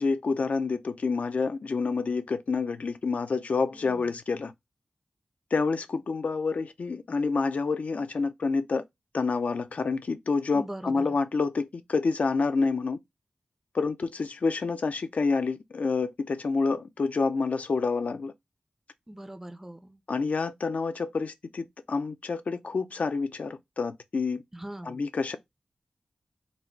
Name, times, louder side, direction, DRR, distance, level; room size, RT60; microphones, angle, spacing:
voice 1, 0.0-4.5 5.5-8.8 9.1-13.0 13.7-18.3 20.1-24.4 24.9-25.4, left 4 dB, 75° left, 0.5 m, -28 dB
voice 2, 3.7-4.1 10.5-11.2 19.1-20.0 24.5-25.0, right 1 dB, 10° right, 0.4 m, -41 dB
4.0 x 2.0 x 4.4 m
wide cardioid pair, 65°, 3 cm